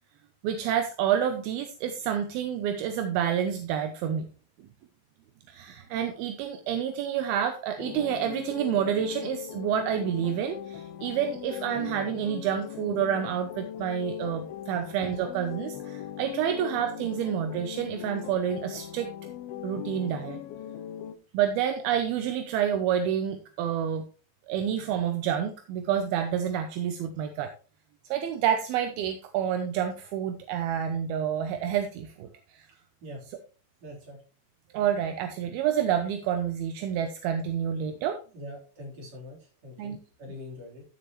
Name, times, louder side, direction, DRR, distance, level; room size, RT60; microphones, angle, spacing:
voice 1, 0.4-4.3 5.5-19.1 19.6-20.4 21.3-24.1 24.5-27.5 28.1-32.7 34.7-38.2 39.8-40.0, right 9 dB, 75° right, 7 dB, 2.4 m, -28 dB
sound 1, 7.8-21.1, left 10 dB, 80° left, 2.2 m, -39 dB
voice 2, 33.8-34.2 38.3-40.8, left 1 dB, 40° right, -2 dB, 4.7 m, -43 dB
14.0 x 7.2 x 3.1 m, 0.37 s
omnidirectional pair, 5.0 m